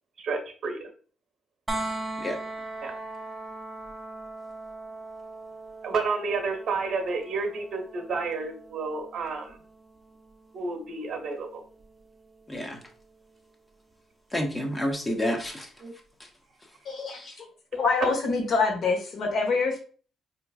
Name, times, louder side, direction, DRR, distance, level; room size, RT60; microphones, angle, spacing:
voice 1, 0.2-0.9 2.8-2.9 5.8-9.6 10.5-11.6 15.8-15.9 18.0-18.1, right 4 dB, 65° right, 4 dB, 1.0 m, -30 dB
sound 1, 1.7-13.5 15.4-15.5, right 2 dB, 20° right, 0.6 m, -40 dB
voice 2, 12.5-12.8 14.3-15.7 17.2-17.3, left 1 dB, 20° left, 3 dB, 0.9 m, -29 dB
voice 3, 16.8-17.2 17.7-19.8, left 4 dB, 65° left, 1 dB, 1.3 m, -25 dB
4.4 x 2.9 x 2.4 m, 0.41 s
cardioid pair, 90°, 0 cm